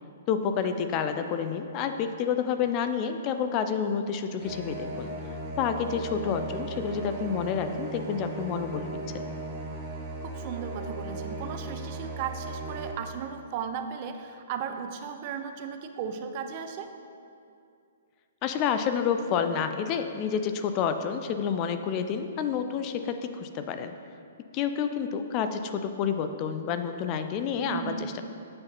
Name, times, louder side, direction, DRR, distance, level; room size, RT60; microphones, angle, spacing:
voice 1, 0.3-5.1 5.6-8.9 9.1-9.2 18.4-23.9 24.5-28.2, left 7 dB, 35° left, 8 dB, 0.3 m, -29 dB
sound 1, 4.4-12.9, right 2 dB, 25° right, 0.9 m, -37 dB
voice 2, 10.2-16.9 27.6-28.2, right 7 dB, 45° right, 7 dB, 0.4 m, -36 dB
8.3 x 4.8 x 2.8 m, 2.5 s
hypercardioid pair, 135°, 0 cm